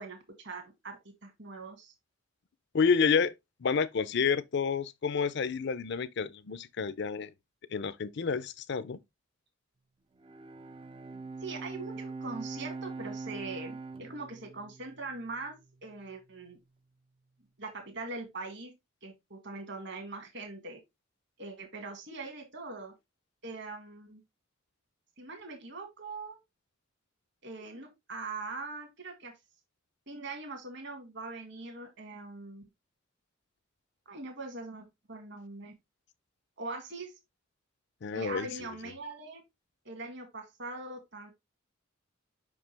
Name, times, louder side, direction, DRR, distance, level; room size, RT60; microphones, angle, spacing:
voice 1, 0.0-1.9 11.4-16.6 17.6-18.7 19.0-20.8 21.4-22.9 23.4-24.2 25.2-26.4 27.4-29.3 30.1-32.6 34.1-35.7 36.6-37.2 38.1-39.4 39.9-41.3, right 3 dB, 60° right, 1.9 m, -42 dB
voice 2, 2.7-3.3 3.6-7.3 7.7-9.0 38.0-38.5, left 5 dB, 60° left, 0.5 m, -29 dB
Bowed string instrument, 10.2-15.7, right 3 dB, 25° right, 0.4 m, -42 dB
5.7 x 5.1 x 3.3 m
head